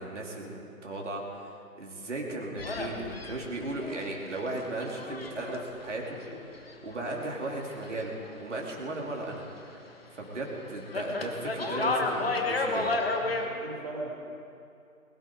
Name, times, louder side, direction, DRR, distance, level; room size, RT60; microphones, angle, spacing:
voice 1, 0.0-6.2 6.8-8.1 8.4-9.4 10.1-13.0, right 2 dB, 50° right, -1 dB, 2.9 m, -36 dB
sound 1, 2.6-8.4 8.6-9.9 10.2-13.5, left 3 dB, 40° left, 1.5 m, -33 dB
voice 2, 13.2-14.1, right 2 dB, 25° right, -2 dB, 2.1 m, -39 dB
21.0 x 12.0 x 5.1 m, 2.5 s
figure-of-eight pair, 160°, 45 cm